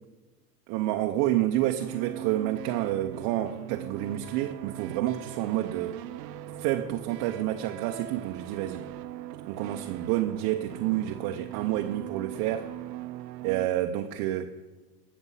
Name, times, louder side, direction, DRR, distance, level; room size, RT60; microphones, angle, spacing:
voice 1, 0.7-6.0 6.6-8.8 9.5-12.7 13.4-14.5, right 13 dB, 45° right, 5 dB, 0.7 m, -29 dB
sound 1, 1.8-13.7, right 12 dB, 80° right, 0.7 m, -41 dB
13.5 x 7.1 x 5.6 m, 1.2 s
hypercardioid pair, 120°, 49 cm